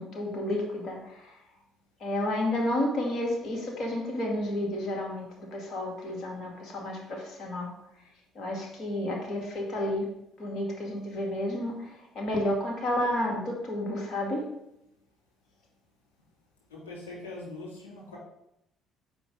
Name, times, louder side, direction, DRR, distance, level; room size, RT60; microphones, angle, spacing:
voice 1, 0.0-1.4 2.0-7.7 8.4-10.1 10.4-14.4, left 1 dB, 55° left, -1 dB, 2.0 m, -31 dB
voice 2, 16.7-18.2, left 2 dB, 80° left, -5 dB, 2.7 m, -42 dB
7.4 x 5.0 x 3.9 m, 0.81 s
figure-of-eight pair, 50°, 0 cm